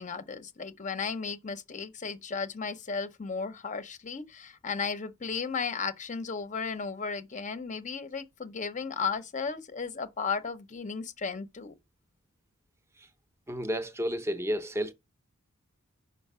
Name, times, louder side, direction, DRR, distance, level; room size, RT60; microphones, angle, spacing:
voice 1, 0.0-11.7, left 5 dB, 35° left, 0.6 m, -35 dB
voice 2, 13.5-14.9, equal, 10° right, 0.6 m, -31 dB
5.7 x 5.1 x 5.4 m
head